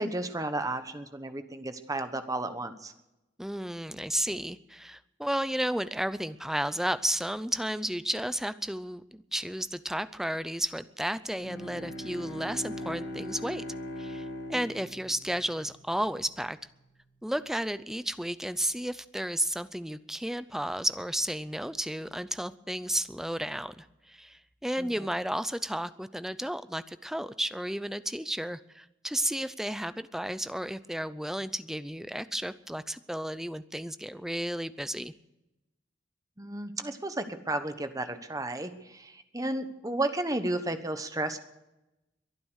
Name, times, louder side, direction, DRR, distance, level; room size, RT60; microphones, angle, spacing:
voice 1, 0.0-2.9 24.8-24.9 36.4-41.4, right 2 dB, 20° right, 9 dB, 1.2 m, -33 dB
voice 2, 3.4-13.6 14.0-16.6 17.2-35.1, right 1 dB, ahead, 14 dB, 0.5 m, -33 dB
Bowed string instrument, 11.3-16.1, left 1 dB, 60° left, 2.1 m, -40 dB
22.5 x 9.6 x 6.4 m, 0.95 s
head